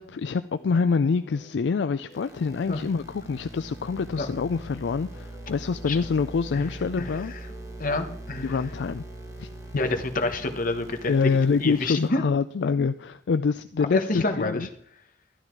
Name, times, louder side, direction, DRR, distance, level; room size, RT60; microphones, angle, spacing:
voice 1, 0.0-7.3 8.4-9.0 9.4-9.5 11.1-14.7, left 5 dB, 70° left, 12 dB, 0.4 m, -26 dB
sound 1, 0.5-9.7, equal, 15° left, 3.1 m, -51 dB
sound 2, 2.1-12.1, right 1 dB, 20° right, 1.7 m, -42 dB
voice 2, 7.8-8.5 9.8-11.1 11.6-12.2 13.9-14.6, left 2 dB, 50° left, 6 dB, 1.3 m, -27 dB
12.5 x 11.0 x 4.7 m, 0.62 s
head